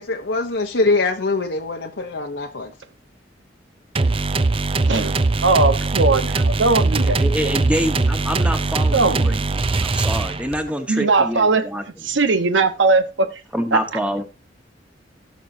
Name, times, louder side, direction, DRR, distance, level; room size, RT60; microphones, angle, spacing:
voice 1, 0.0-2.7, left 3 dB, 75° left, 1.0 m, -23 dB
sound 1, 4.0-10.7, right 3 dB, 30° right, 0.5 m, -21 dB
voice 2, 4.8-7.2 8.9-9.4 10.9-11.6 12.0-13.3 13.7-13.8, right 3 dB, 85° right, 1.1 m, -19 dB
voice 3, 7.1-11.8 13.5-14.2, equal, 5° right, 1.3 m, -26 dB
18.0 x 6.3 x 2.8 m
head